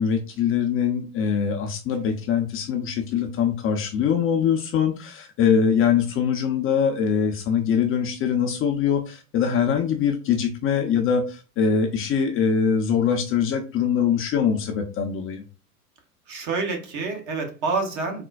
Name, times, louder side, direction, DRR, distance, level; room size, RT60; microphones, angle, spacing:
voice 1, 0.0-15.4, left 7 dB, 30° left, 4 dB, 0.5 m, -23 dB
voice 2, 16.3-18.2, right 4 dB, 45° right, 3 dB, 1.1 m, -27 dB
4.1 x 2.1 x 2.3 m, 0.34 s
hypercardioid pair, 85°, 44 cm